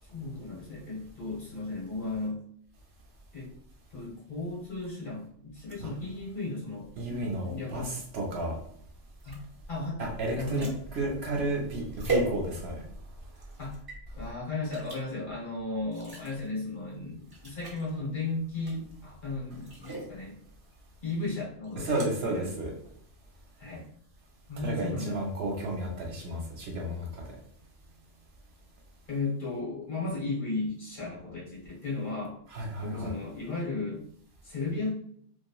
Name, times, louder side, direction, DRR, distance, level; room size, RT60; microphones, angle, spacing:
voice 1, 0.1-2.4 3.3-3.5 3.9-7.9 9.2-9.4 9.7-10.7 13.6-13.8 14.1-20.4 21.0-21.9 22.2-22.5 23.6-23.9 24.5-25.2 29.1-32.4 32.8-34.0 34.4-34.9, left 3 dB, 45° left, -6 dB, 1.1 m, -35 dB
voice 2, 7.0-8.6 10.0-12.8 21.8-22.7 24.6-27.2 32.5-33.1, right 1 dB, 65° right, -1 dB, 0.8 m, -32 dB
sound 1, 9.2-12.9 13.4-14.0 14.7-15.0 15.9-16.5 16.9-17.0 17.3-17.8 18.6-19.0 19.5-20.1 21.6-22.1, right 3 dB, 30° right, 0.5 m, -37 dB
2.9 x 2.3 x 2.3 m, 0.66 s
omnidirectional pair, 1.2 m